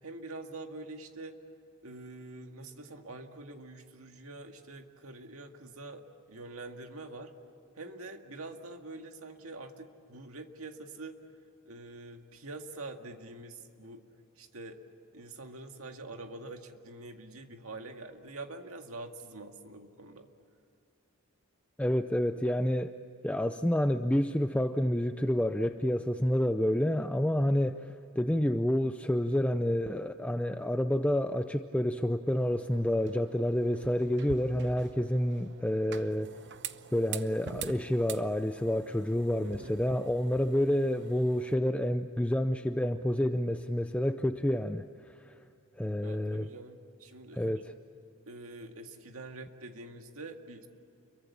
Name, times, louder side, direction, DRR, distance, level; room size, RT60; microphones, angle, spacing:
voice 1, 0.0-1.4 1.8-7.3 7.8-11.2 11.6-14.0 14.4-14.8 15.1-20.3 39.4-39.8 46.0-47.6 48.3-50.7, right 2 dB, 75° right, 5 dB, 2.0 m, -45 dB
voice 2, 21.8-22.9 23.2-36.3 36.9-45.3 45.8-46.5 47.3-47.7, left 1 dB, 5° left, 8 dB, 0.5 m, -29 dB
sound 1, 32.3-41.5, right 7 dB, 55° right, 0.9 m, -46 dB
29.5 x 23.5 x 7.3 m, 2.7 s
head